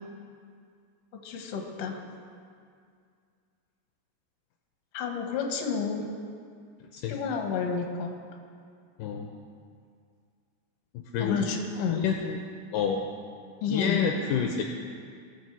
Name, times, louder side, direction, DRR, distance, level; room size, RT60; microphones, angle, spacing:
voice 1, 1.2-2.0 4.9-6.1 7.1-8.1 11.2-12.1 13.6-14.0, left 6 dB, 55° left, 2 dB, 2.0 m, -30 dB
voice 2, 10.9-11.4 11.9-12.4 12.7-13.1 13.7-14.6, left 7 dB, 80° left, 2 dB, 2.2 m, -28 dB
19.5 x 6.8 x 4.7 m, 2.2 s
omnidirectional pair, 4.2 m